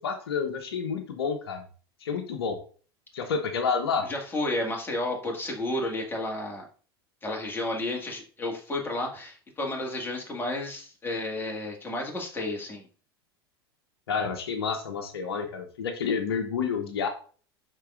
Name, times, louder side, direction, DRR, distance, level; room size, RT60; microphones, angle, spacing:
voice 1, 0.0-1.6 2.0-2.6 3.1-4.1 14.1-17.1, left 5 dB, 75° left, 7 dB, 0.8 m, -29 dB
voice 2, 4.0-6.6 7.2-12.9, left 1 dB, 15° left, 0 dB, 2.1 m, -32 dB
10.0 x 3.8 x 2.5 m, 0.41 s
hypercardioid pair, 85°, 13 cm